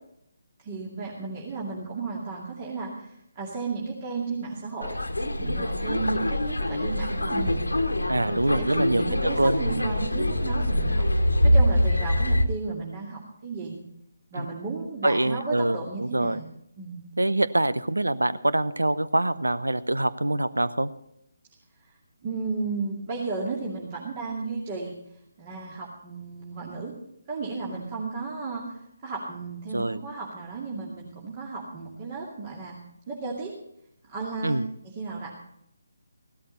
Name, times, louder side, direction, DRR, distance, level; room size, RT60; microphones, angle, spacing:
voice 1, 0.6-5.0 5.4-7.7 8.2-11.1 11.4-13.8 14.3-16.5 16.8-17.0 22.2-25.0 25.4-26.9 27.3-32.8 33.1-33.5 34.1-34.6 34.9-35.3, right 4 dB, 30° right, -3 dB, 2.4 m, -34 dB
sound 1, 4.8-12.5, left 1 dB, 85° left, 1.4 m, -24 dB
voice 2, 8.1-10.0 14.3-14.5 15.0-16.4 17.2-20.9 29.7-30.0 34.4-34.7, right 1 dB, 80° right, 15 dB, 0.7 m, -25 dB
15.5 x 12.5 x 4.1 m, 0.76 s
figure-of-eight pair, 145°, 0 cm